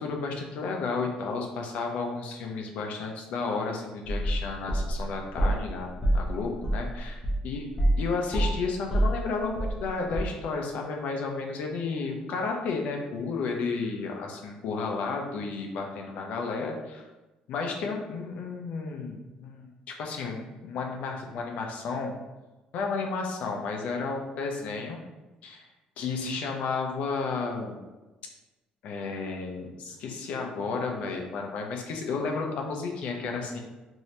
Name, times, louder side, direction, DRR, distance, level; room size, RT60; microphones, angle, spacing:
voice 1, 0.0-7.7 8.0-17.1 17.5-22.2 22.7-25.0 25.4-25.6 26.0-27.8 28.8-33.6, left 4 dB, 65° left, 1 dB, 0.6 m, -32 dB
sound 1, 4.1-5.7 6.0-8.1 8.3-9.9 10.1-10.2, right 1 dB, 15° left, 0.7 m, -26 dB
3.2 x 2.7 x 2.8 m, 1.1 s
cardioid pair, 155°, 3 cm